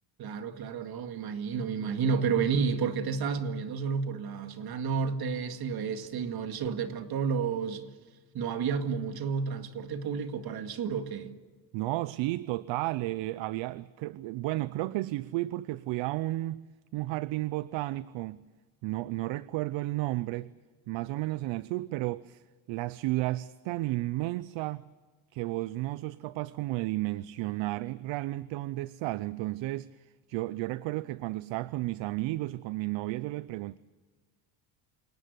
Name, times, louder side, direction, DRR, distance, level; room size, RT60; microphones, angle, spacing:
voice 1, 0.2-7.8 8.3-11.3, right 6 dB, 50° right, 2.1 m, -31 dB
voice 2, 11.7-16.6 16.9-18.4 18.8-20.5 20.9-22.4 22.7-24.8 25.3-29.9 30.3-33.8, right 18 dB, 70° right, 0.7 m, -33 dB
28.5 x 19.0 x 8.2 m
cardioid pair, 130°, 47 cm